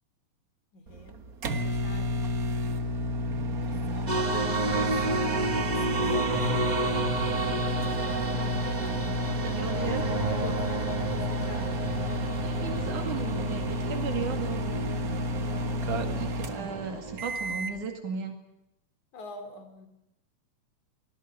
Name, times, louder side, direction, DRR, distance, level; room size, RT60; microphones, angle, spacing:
voice 1, 0.7-1.2 1.6-2.4 3.6-6.5 7.7-8.3 9.7-11.7 12.4-12.6 19.1-19.9, left 4 dB, 70° left, 8 dB, 4.4 m, -45 dB
sound 1, 0.9-17.8, equal, 45° right, 1.2 m, -31 dB
sound 2, 4.1-17.3, right 2 dB, 20° right, 1.2 m, -31 dB
voice 2, 9.3-10.0 12.4-14.7 16.0-18.4, right 6 dB, 80° right, 5 dB, 3.8 m, -36 dB
24.5 x 19.5 x 8.7 m, 0.88 s
omnidirectional pair, 3.5 m